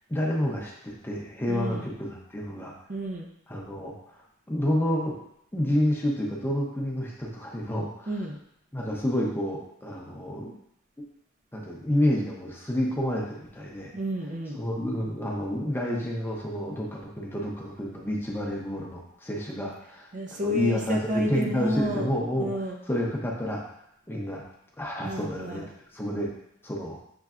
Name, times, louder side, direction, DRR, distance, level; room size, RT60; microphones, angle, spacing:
voice 1, 0.1-2.7 3.5-4.2 4.5-5.2 5.5-8.1 8.7-10.5 11.5-13.9 14.5-23.6 24.1-24.4 24.8-25.6 25.9-26.3 26.6-27.0, left 1 dB, 10° left, -2 dB, 0.6 m, -29 dB
voice 2, 1.5-1.9 2.9-3.3 8.1-8.4 13.9-14.6 20.1-22.1 22.4-22.8 25.0-25.7, equal, 35° right, 1 dB, 0.5 m, -30 dB
6.7 x 3.2 x 2.4 m, 0.76 s
head